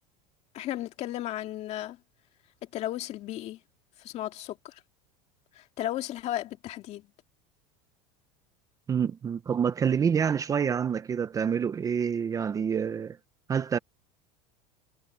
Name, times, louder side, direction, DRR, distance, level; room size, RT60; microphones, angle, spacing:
voice 1, 0.5-2.0 2.7-3.6 4.0-4.8 5.5-7.1, left 13 dB, 40° left, 2.2 m, -34 dB
voice 2, 8.9-13.2 13.5-13.8, right 7 dB, 20° right, 0.8 m, -27 dB
supercardioid pair, 145°, 16 cm